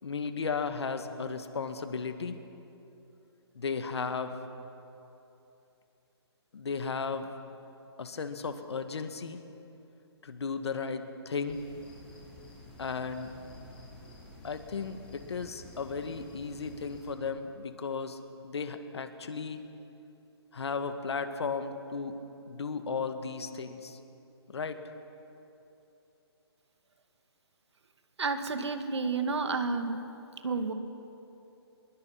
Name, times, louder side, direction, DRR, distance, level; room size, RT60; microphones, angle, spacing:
voice 1, 0.0-2.4 3.5-4.4 6.5-7.3 8.0-9.4 10.2-11.6 12.8-13.4 14.4-19.6 20.5-22.2 22.5-24.0 24.5-24.8, left 5 dB, 70° left, 8 dB, 2.0 m, -35 dB
sound 1, 11.5-17.1, left 1 dB, 10° left, 7.0 m, -51 dB
voice 2, 28.2-30.0 30.4-30.7, right 4 dB, 75° right, 8 dB, 2.2 m, -30 dB
25.0 x 21.5 x 5.9 m, 2.9 s
hypercardioid pair, 155°, 14 cm